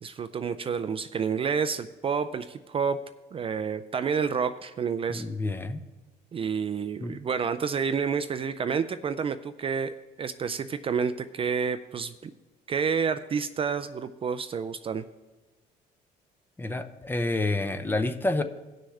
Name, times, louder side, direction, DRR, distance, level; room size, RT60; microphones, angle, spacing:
voice 1, 0.0-3.0 3.3-5.3 6.3-12.3 12.7-15.0, right 6 dB, 35° right, 11 dB, 0.4 m, -29 dB
voice 2, 5.1-5.8 7.0-7.2 16.6-18.4, left 2 dB, 10° left, 10 dB, 0.6 m, -28 dB
18.5 x 6.3 x 3.3 m, 1.1 s
cardioid pair, 110°, 17 cm